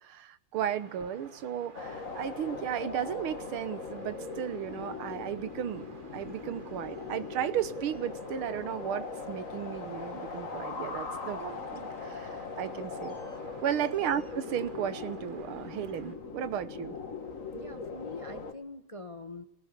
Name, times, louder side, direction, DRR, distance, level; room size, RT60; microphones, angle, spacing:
voice 1, 0.0-5.9 6.1-13.1 13.6-17.0, right 10 dB, 85° right, 1.9 m, -34 dB
sound 1, 0.5-16.2, right 4 dB, 30° right, 1.2 m, -52 dB
sound 2, 1.7-18.5, left 4 dB, 40° left, 2.0 m, -40 dB
voice 2, 17.5-19.4, left 2 dB, 25° left, 0.8 m, -44 dB
21.0 x 19.5 x 8.6 m
omnidirectional pair, 2.3 m